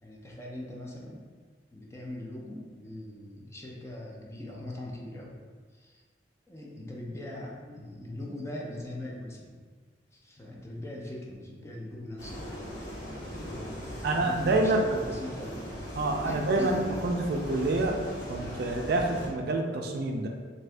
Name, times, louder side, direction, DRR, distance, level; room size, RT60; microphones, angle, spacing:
voice 1, 0.0-1.2 1.7-5.4 5.7-6.0 6.5-9.6 10.1-12.4 13.2-15.6 16.2-16.9, left 1 dB, 15° left, -2 dB, 0.4 m, -41 dB
sound 1, 12.2-19.3, equal, 65° left, 1.5 m, -39 dB
voice 2, 14.0-14.9 15.9-20.3, right 2 dB, 60° right, 2 dB, 0.4 m, -27 dB
2.6 x 2.6 x 3.2 m, 1.6 s
head